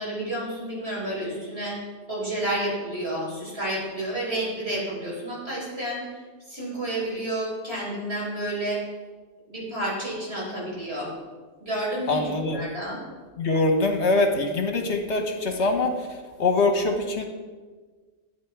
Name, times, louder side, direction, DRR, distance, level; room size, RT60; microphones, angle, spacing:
voice 1, 0.0-1.8 2.1-6.0 6.5-8.8 9.5-11.1 11.6-13.0, right 1 dB, 50° right, -5 dB, 4.6 m, -30 dB
voice 2, 12.1-12.7 13.4-15.9 16.4-17.3, left 2 dB, 60° left, 4 dB, 1.4 m, -23 dB
13.0 x 9.1 x 4.8 m, 1.4 s
omnidirectional pair, 1.3 m